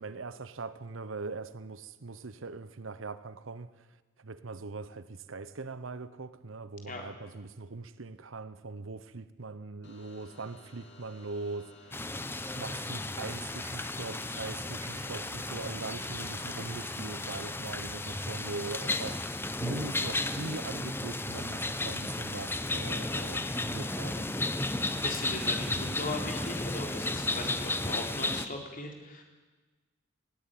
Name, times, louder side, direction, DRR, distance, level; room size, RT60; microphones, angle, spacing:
voice 1, 0.0-3.7 4.2-12.2 12.6-19.3 19.6-24.3, right 3 dB, 80° right, 0.9 m, -41 dB
sound 1, 9.8-17.7, left 1 dB, 60° left, 3.4 m, -54 dB
sound 2, 11.9-28.5, left 2 dB, 10° left, 0.9 m, -34 dB
voice 2, 25.0-29.2, left 2 dB, 45° left, 3.7 m, -38 dB
20.0 x 17.0 x 9.2 m
head